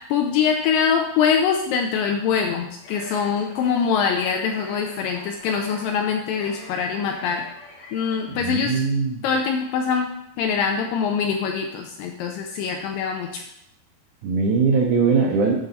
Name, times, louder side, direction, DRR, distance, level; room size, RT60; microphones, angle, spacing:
voice 1, 0.1-7.4 7.9-8.8 9.2-13.4, left 6 dB, 80° left, 4 dB, 2.0 m, -23 dB
sound 1, 2.8-8.4, left 1 dB, 40° left, 2.5 m, -43 dB
voice 2, 8.4-9.2 14.2-15.7, right 4 dB, 75° right, -1 dB, 1.8 m, -21 dB
10.0 x 3.9 x 4.2 m, 0.77 s
omnidirectional pair, 4.4 m